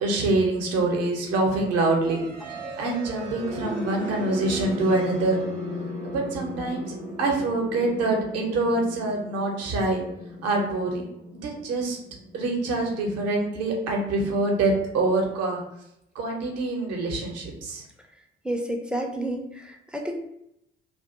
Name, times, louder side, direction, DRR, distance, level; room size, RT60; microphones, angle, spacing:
voice 1, 0.0-2.3 2.8-5.4 6.0-10.0 10.4-11.0 11.4-12.0 12.3-15.6 16.2-17.8, right 2 dB, 55° right, 1 dB, 0.7 m, -25 dB
sound 1, 2.0-13.9, left 1 dB, 90° right, 0.6 m, -36 dB
voice 2, 18.4-20.1, right 1 dB, 5° right, 2 dB, 0.4 m, -30 dB
2.5 x 2.1 x 2.8 m, 0.81 s
figure-of-eight pair, 40°, 30 cm